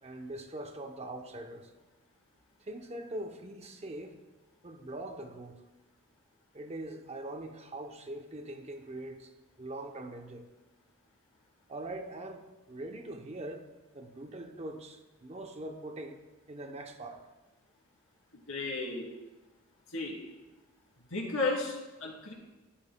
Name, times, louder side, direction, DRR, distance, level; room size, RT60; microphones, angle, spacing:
voice 1, 0.0-1.7 2.6-4.1 4.6-5.6 6.5-9.3 9.6-10.5 11.7-13.7 13.9-16.2 16.5-17.3, right 1 dB, 30° right, 0.7 m, -42 dB
voice 2, 18.3-19.1 19.9-20.2 21.1-22.3, left 3 dB, 75° left, 2.8 m, -34 dB
13.5 x 11.5 x 2.2 m
head